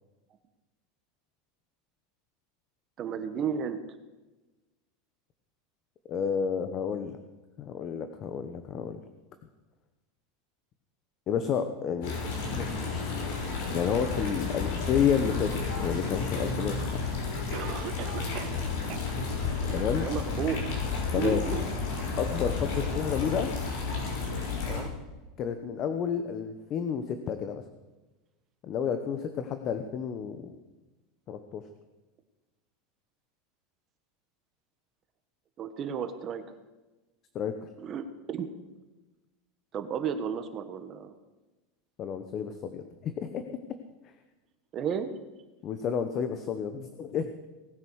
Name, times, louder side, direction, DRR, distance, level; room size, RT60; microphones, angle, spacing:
voice 1, 3.0-3.8 19.6-20.7 21.2-21.6 24.7-24.9 35.6-36.6 37.8-38.5 39.7-41.2 44.7-45.1, right 7 dB, 30° right, 9 dB, 1.4 m, -33 dB
voice 2, 6.1-7.2 7.6-9.0 11.3-12.1 12.5-15.5 15.8-16.7 19.7-20.1 21.1-21.4 22.2-23.5 25.4-27.6 28.6-30.6 31.3-31.6 37.3-37.7 42.0-43.6 45.6-47.5, left 7 dB, 35° left, 9 dB, 1.1 m, -31 dB
sound 1, 12.0-24.8, left 4 dB, 60° left, 6.1 m, -31 dB
Cough, 17.5-18.6 18.9-19.0 19.6-19.7 20.2-20.3, right 10 dB, 50° right, 1.6 m, -39 dB
19.0 x 9.3 x 6.5 m, 1.1 s
supercardioid pair, 145°, 0 cm